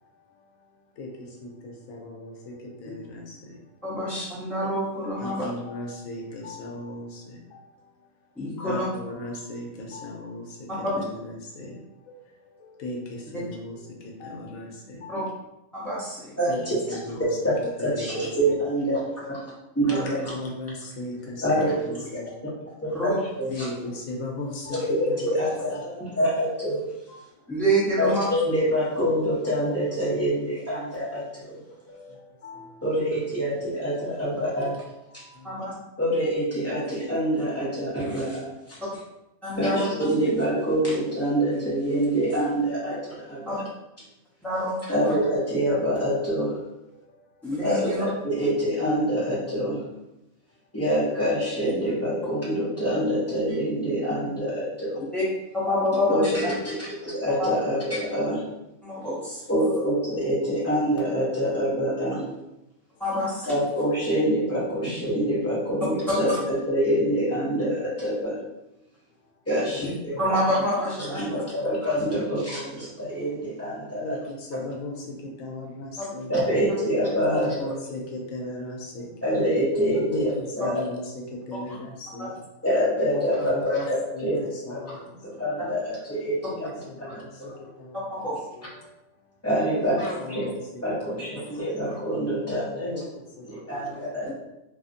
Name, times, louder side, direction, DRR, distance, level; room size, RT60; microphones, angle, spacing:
voice 1, 1.0-2.5 2.8-3.6 5.2-7.7 8.6-11.8 12.1-15.2 16.5-16.6 16.9-17.3 17.8-18.3 19.9-22.2 23.5-24.8 25.1-25.5 25.7-25.9 27.1-27.2 31.6-32.8 34.6-34.8 35.1-35.6 36.7-36.8 46.8-47.3 53.3-53.4 70.1-70.2 71.0-71.7 74.0-76.3 77.2-79.1 80.1-81.0 81.3-82.3 83.1-83.9 84.1-85.4 86.4-88.2 88.5-88.9 89.8-89.9 90.2-90.5 91.1-91.8 92.8-93.0 93.4-93.9, left 1 dB, 80° left, 0 dB, 1.0 m, -37 dB
voice 2, 3.8-5.4 8.4-8.9 10.8-10.9 15.1-15.2 15.7-16.3 19.9-20.0 22.9-23.1 27.5-28.2 35.4-35.7 39.4-39.8 43.5-43.6 44.4-44.8 47.4-48.0 55.1-55.2 55.6-56.3 57.4-57.5 58.8-59.4 63.0-63.5 69.8-69.9 70.2-71.3 76.0-76.1 82.2-82.3 88.1-88.4, equal, ahead, -11 dB, 1.0 m, -27 dB
voice 3, 16.4-17.2 17.4-17.5 17.8-20.3 21.4-22.1 22.8-23.7 24.8-26.8 28.0-31.6 31.9-32.1 32.8-34.7 35.1-35.2 36.0-38.8 39.6-43.6 44.9-46.6 47.6-49.9 50.7-55.0 56.1-58.4 59.5-62.3 63.4-68.4 69.5-70.2 71.0-74.2 74.5-74.6 76.3-77.7 79.2-80.7 82.6-84.4 84.7-84.8 85.2-87.5 89.4-90.4 90.8-92.9 93.5-94.3, equal, 25° left, -7 dB, 0.3 m, -26 dB
2.7 x 2.4 x 2.5 m, 0.92 s
omnidirectional pair, 1.4 m